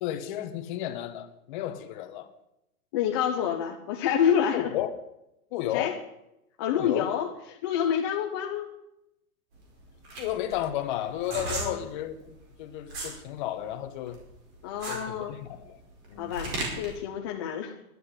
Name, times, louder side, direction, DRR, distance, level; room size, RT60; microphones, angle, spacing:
voice 1, 0.0-2.3 4.5-4.9 5.5-6.0 6.7-7.1 10.2-14.2 14.9-15.8 16.1-16.3, left 12 dB, 35° left, 1.1 m, -33 dB
voice 2, 2.9-4.7 5.7-5.9 6.6-8.7 11.5-11.8 14.6-15.4 16.2-17.8, left 9 dB, 20° left, 0.5 m, -28 dB
sound 1, 9.5-13.2 13.6-17.0, right 2 dB, 35° right, 4.8 m, -36 dB
11.0 x 8.6 x 9.7 m
supercardioid pair, 165°, 45 cm